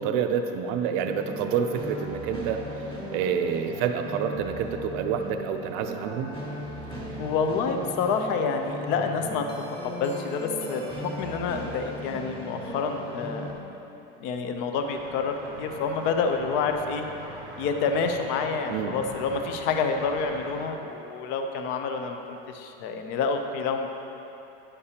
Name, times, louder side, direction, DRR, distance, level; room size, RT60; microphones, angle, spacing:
voice 1, 0.0-2.7 3.1-6.3 18.7-18.9, right 7 dB, 45° right, 6 dB, 0.5 m, -28 dB
sound 1, 1.0-13.5, equal, 15° left, 1.4 m, -37 dB
voice 2, 7.2-9.5 9.8-13.5 14.2-17.1 17.6-23.9, left 5 dB, 40° left, 5 dB, 0.5 m, -28 dB
sound 2, 14.8-20.7, right 2 dB, 15° right, 0.7 m, -43 dB
9.9 x 6.6 x 2.8 m, 3.0 s
supercardioid pair, 160°, 29 cm